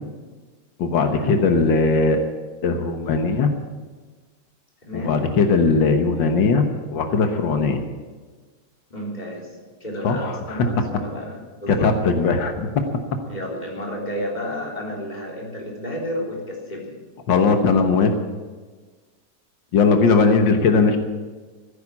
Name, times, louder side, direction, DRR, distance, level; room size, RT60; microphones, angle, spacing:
voice 1, 0.8-2.3 2.6-3.5 4.9-7.8 10.0-10.7 11.7-12.7 17.3-18.1 19.7-21.0, left 4 dB, 90° left, 6 dB, 2.0 m, -19 dB
voice 2, 4.8-5.1 8.9-9.5 9.8-11.9 13.3-17.0, left 1 dB, 20° left, -1 dB, 3.7 m, -31 dB
16.0 x 9.4 x 8.6 m, 1.4 s
omnidirectional pair, 2.0 m